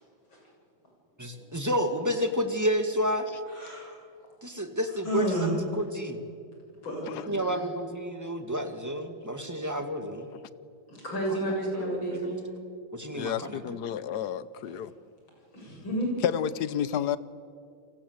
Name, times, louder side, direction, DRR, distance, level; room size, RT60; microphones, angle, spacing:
voice 1, 1.2-3.3 4.4-6.2 7.3-10.3 11.3-12.3 12.9-13.8, equal, 10° right, 2.1 m, -30 dB
voice 2, 3.5-4.0 5.0-5.5 6.8-7.5 10.9-12.5 15.5-16.1, right 1 dB, 80° left, 8.0 m, -31 dB
voice 3, 13.1-14.9 16.2-17.2, left 9 dB, 60° left, 1.3 m, -30 dB
30.0 x 24.0 x 8.2 m
omnidirectional pair, 2.1 m